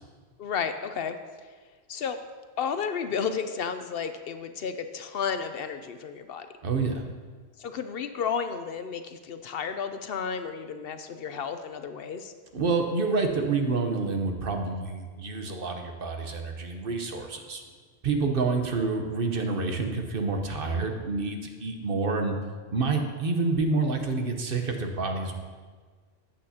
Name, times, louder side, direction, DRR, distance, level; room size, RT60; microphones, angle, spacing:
voice 1, 0.4-1.2 1.9-2.2 2.6-6.5 7.6-12.3, left 6 dB, 65° left, 9 dB, 0.8 m, -32 dB
voice 2, 6.6-7.0 12.5-17.6 18.0-22.4 22.7-25.4, right 4 dB, 60° right, 4 dB, 1.1 m, -28 dB
14.0 x 8.7 x 2.8 m, 1.5 s
omnidirectional pair, 1.1 m